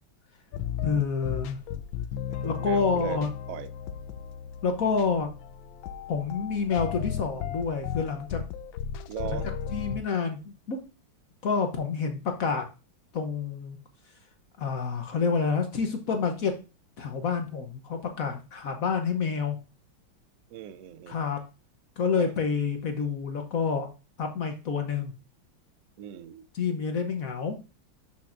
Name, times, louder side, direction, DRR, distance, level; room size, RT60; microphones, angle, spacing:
sound 1, 0.5-10.0, left 8 dB, 85° left, 1.4 m, -35 dB
voice 1, 0.8-1.6 2.4-3.3 4.6-5.3 6.1-8.4 9.3-9.4 9.7-10.8 11.4-12.7 13.1-13.8 14.6-16.6 17.0-19.6 21.1-21.4 22.0-23.9 24.2-25.1 26.5-27.6, left 5 dB, 55° left, 1.1 m, -28 dB
voice 2, 2.3-3.7 9.1-9.5 20.5-21.2 22.2-22.3 26.0-26.5, right 10 dB, 80° right, 0.7 m, -39 dB
11.5 x 5.9 x 2.5 m
omnidirectional pair, 2.1 m